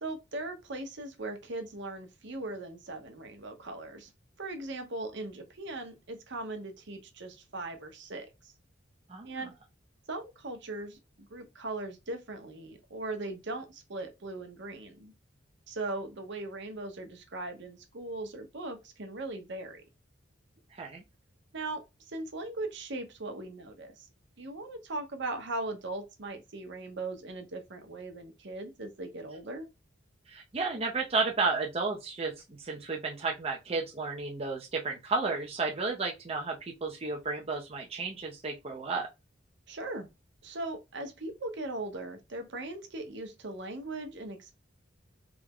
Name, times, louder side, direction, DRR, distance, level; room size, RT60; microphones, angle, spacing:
voice 1, 0.0-4.1 4.4-8.5 9.2-9.5 10.1-15.1 15.7-19.8 21.5-24.1 24.4-29.7 39.7-40.1 40.4-44.5, right 2 dB, 65° right, 0.9 m, -39 dB
voice 2, 9.1-9.4 20.7-21.0 30.3-32.3 32.6-39.1, right 4 dB, 30° right, 0.6 m, -32 dB
3.5 x 2.1 x 3.5 m
head